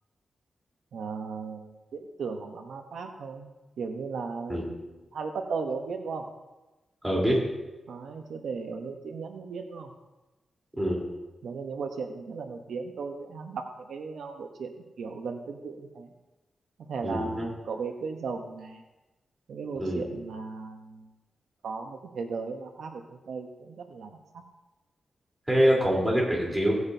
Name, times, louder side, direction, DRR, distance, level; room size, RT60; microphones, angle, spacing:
voice 1, 0.9-3.5 3.8-6.3 7.9-9.9 11.4-14.7 15.0-16.1 16.8-18.8 19.5-21.1 21.6-24.4, right 4 dB, 90° right, 5 dB, 0.9 m, -36 dB
voice 2, 7.0-7.4 10.8-11.0 17.0-17.5 19.8-20.0 25.5-26.7, equal, 10° right, -3 dB, 3.7 m, -24 dB
17.0 x 9.4 x 2.8 m, 1.1 s
wide cardioid pair, 120°, 0 cm